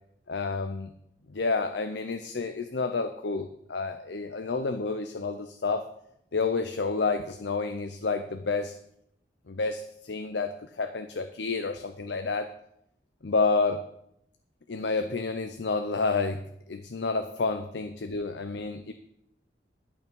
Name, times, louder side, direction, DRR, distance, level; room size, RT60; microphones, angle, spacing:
voice 1, 0.3-0.9 1.3-5.8 6.3-8.8 9.5-12.5 13.2-13.8 14.7-18.9, left 4 dB, 75° left, 8 dB, 0.7 m, -29 dB
11.5 x 8.2 x 5.4 m, 0.75 s
head